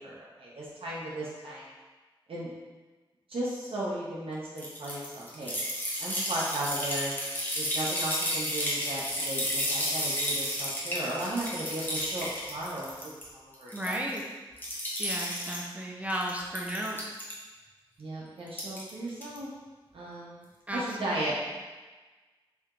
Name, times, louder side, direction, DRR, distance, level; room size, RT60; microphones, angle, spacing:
voice 1, 0.0-1.7 2.3-2.5 3.3-5.5 6.0-7.1 7.6-14.0 18.0-19.5 19.9-20.4 20.7-21.3, right 1 dB, 85° right, -6 dB, 0.8 m, -36 dB
sound 1, 4.6-13.2 13.5-14.2 14.6-15.6 16.1-17.3 18.5-18.9 19.2-19.4, equal, 20° left, 1.1 m, -32 dB
voice 2, 13.7-14.2 15.0-17.0 20.7-20.8, right 1 dB, 15° right, -1 dB, 0.6 m, -33 dB
3.5 x 2.8 x 3.6 m, 1.3 s
cardioid pair, 55°, 9 cm